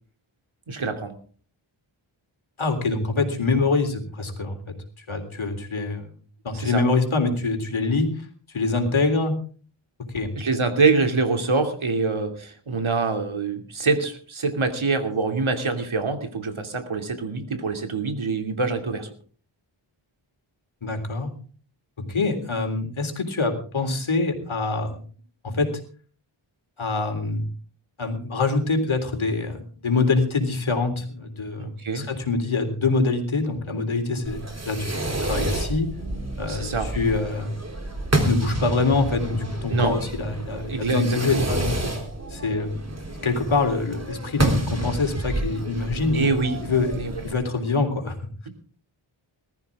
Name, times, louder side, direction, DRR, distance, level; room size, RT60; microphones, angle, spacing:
voice 1, 0.7-1.1 6.5-6.8 10.4-19.1 31.6-32.1 36.4-36.9 39.7-39.9 40.7-41.4 46.1-46.6 46.9-47.1, right 4 dB, 75° right, 5 dB, 2.8 m, -25 dB
voice 2, 2.6-4.6 5.1-6.1 6.4-8.1 8.5-9.3 10.1-10.3 20.8-21.3 22.0-25.0 25.4-25.7 26.8-27.5 28.0-34.4 34.7-35.9 36.4-37.5 38.2-42.0 42.3-42.8 43.2-46.3 46.6-48.1, left 3 dB, 70° left, 5 dB, 3.6 m, -25 dB
Fireworks, 34.2-47.3, right 1 dB, 30° right, 3.5 m, -29 dB
20.0 x 14.0 x 3.6 m, 0.42 s
wide cardioid pair, 70°, 49 cm